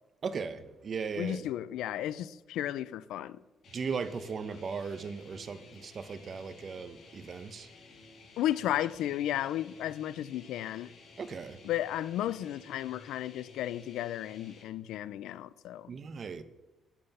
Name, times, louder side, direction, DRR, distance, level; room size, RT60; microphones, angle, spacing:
voice 1, 0.2-1.5 3.7-7.7 11.2-11.6 15.9-16.4, right 5 dB, 45° right, 1.0 m, -37 dB
voice 2, 1.2-3.4 8.4-10.9 11.6-15.9, left 12 dB, 85° left, 0.5 m, -34 dB
sound 1, 3.6-14.6, left 3 dB, 60° left, 3.3 m, -54 dB
11.5 x 9.2 x 5.5 m
cardioid pair, 90°, 0 cm